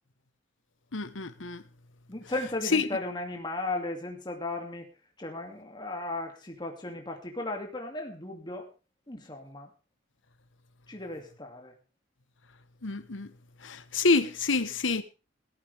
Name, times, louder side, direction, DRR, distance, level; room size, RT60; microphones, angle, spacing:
voice 1, 0.9-1.6 2.7-2.8 12.8-13.3 13.6-15.0, left 3 dB, 85° left, 1.2 m, -27 dB
voice 2, 2.1-4.9 5.2-8.7 9.1-9.7 10.9-11.7, left 2 dB, 25° left, 2.5 m, -36 dB
17.5 x 14.0 x 3.5 m
head